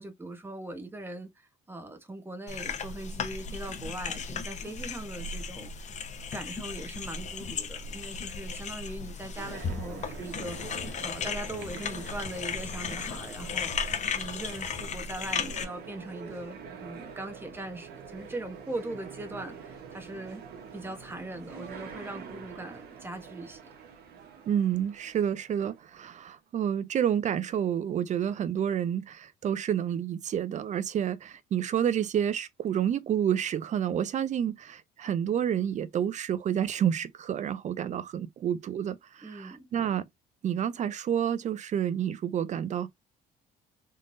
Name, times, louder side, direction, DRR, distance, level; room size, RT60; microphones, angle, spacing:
voice 1, 0.0-5.9 6.3-13.7 14.1-20.4 20.7-23.6 39.2-39.7, right 1 dB, 15° right, 1.2 m, -40 dB
sound 1, 2.5-15.6, left 5 dB, 45° left, 0.9 m, -35 dB
sound 2, 9.4-26.0, right 6 dB, 70° right, 1.3 m, -46 dB
voice 2, 24.5-40.0 40.4-42.9, right 9 dB, 45° right, 0.6 m, -29 dB
3.7 x 3.2 x 2.6 m
cardioid pair, 110°, 17 cm